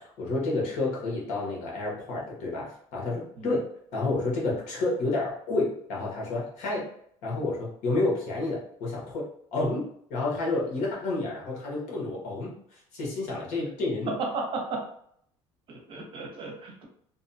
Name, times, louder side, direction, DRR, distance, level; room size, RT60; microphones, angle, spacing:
voice 1, 0.0-3.6 3.9-6.9 7.2-14.1, left 2 dB, 75° left, -3 dB, 1.1 m, -30 dB
voice 2, 14.1-14.9 15.7-16.8, right 3 dB, 45° right, 1 dB, 0.7 m, -34 dB
2.6 x 2.1 x 2.6 m, 0.66 s
cardioid pair, 120°, 12 cm